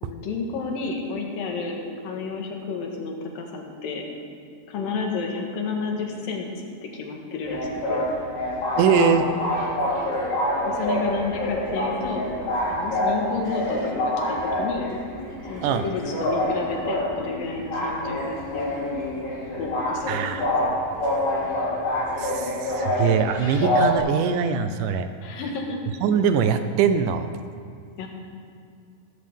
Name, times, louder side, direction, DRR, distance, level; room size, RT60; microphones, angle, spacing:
voice 1, 0.0-4.1 4.7-8.0 10.6-12.3 12.7-14.9 15.5-19.1 19.5-20.7 25.2-25.8 28.0-28.1, left 4 dB, 85° left, 1 dB, 3.3 m, -31 dB
sound 1, 7.5-24.0, left 1 dB, 60° left, 4.7 m, -26 dB
voice 2, 8.8-9.3 15.6-15.8 20.1-20.5 22.2-25.1 26.0-27.3, right 7 dB, 80° right, 9 dB, 2.1 m, -22 dB
16.5 x 14.5 x 3.6 m, 2.2 s
omnidirectional pair, 3.9 m